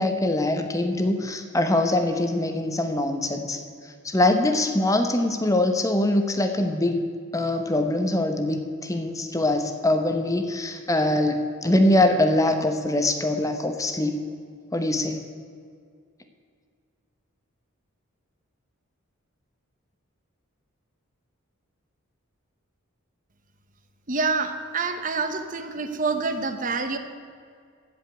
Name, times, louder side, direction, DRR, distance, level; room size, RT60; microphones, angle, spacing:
voice 1, 0.0-3.6 4.0-7.0 7.3-14.2 14.7-15.2, left 1 dB, 15° left, 6 dB, 0.9 m, -23 dB
voice 2, 24.1-27.0, right 4 dB, 40° right, 8 dB, 0.9 m, -27 dB
16.0 x 5.3 x 9.2 m, 2.2 s
head